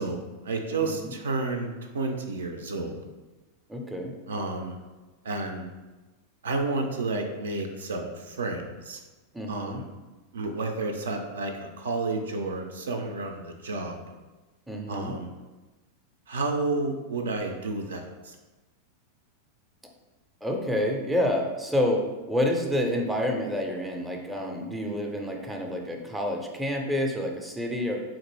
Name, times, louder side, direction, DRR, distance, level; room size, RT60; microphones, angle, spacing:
voice 1, 0.0-3.0 4.3-4.7 5.2-5.7 6.4-9.0 9.5-9.8 10.3-14.1 14.9-15.3 16.3-18.4, right 3 dB, 65° right, 4 dB, 0.4 m, -31 dB
voice 2, 0.8-1.1 3.7-4.1 9.3-9.8 14.7-15.2 20.4-28.0, left 1 dB, 5° right, 1 dB, 0.5 m, -28 dB
3.7 x 2.5 x 3.0 m, 1.2 s
figure-of-eight pair, 90°, 0 cm